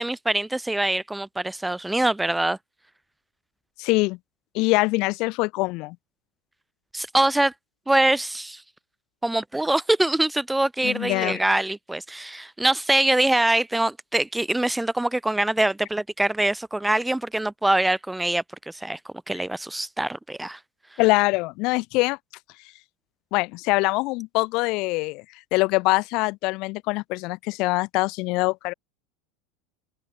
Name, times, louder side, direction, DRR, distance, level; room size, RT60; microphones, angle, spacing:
voice 1, 0.0-2.6 6.9-7.5 7.9-8.6 9.2-20.6, right 1 dB, 5° right, 0.9 m, -24 dB
voice 2, 3.8-4.2 4.5-6.0 10.8-11.4 19.3-19.4 21.0-22.2 23.3-25.2 25.5-28.7, left 24 dB, 40° left, 2.1 m, -23 dB
open air
supercardioid pair, 170°, 0 cm